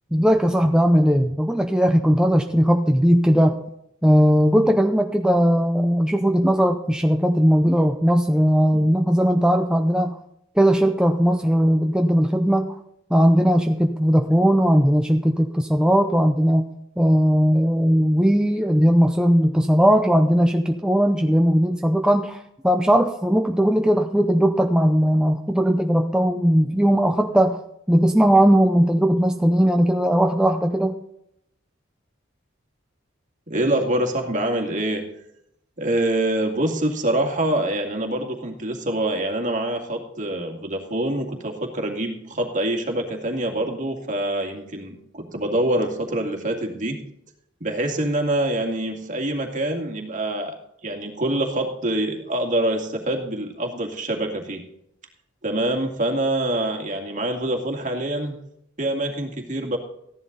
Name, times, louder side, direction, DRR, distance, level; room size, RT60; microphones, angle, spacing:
voice 1, 0.1-3.6 4.0-10.2 10.6-12.7 13.1-16.6 17.0-27.6 27.9-31.0, equal, 5° right, 3 dB, 0.6 m, -18 dB
voice 2, 33.5-35.1 35.8-47.0 47.6-50.6 50.8-54.7 55.4-58.3 58.8-59.8, right 1 dB, 40° right, 3 dB, 2.3 m, -25 dB
15.0 x 11.0 x 4.0 m, 0.76 s
head